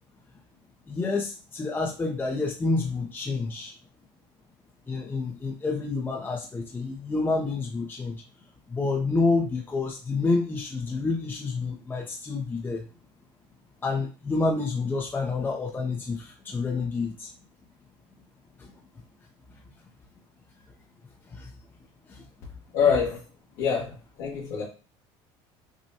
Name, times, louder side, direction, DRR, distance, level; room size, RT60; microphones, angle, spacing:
voice 1, 0.9-3.7 4.9-8.2 8.7-12.9 13.8-17.3 18.6-18.7 21.3-21.5 22.1-22.3, left 3 dB, 15° left, 1 dB, 0.6 m, -28 dB
voice 2, 22.7-23.2 23.6-24.6, left 6 dB, 75° left, -6 dB, 1.5 m, -25 dB
6.0 x 2.2 x 2.8 m, 0.33 s
supercardioid pair, 115°, 12 cm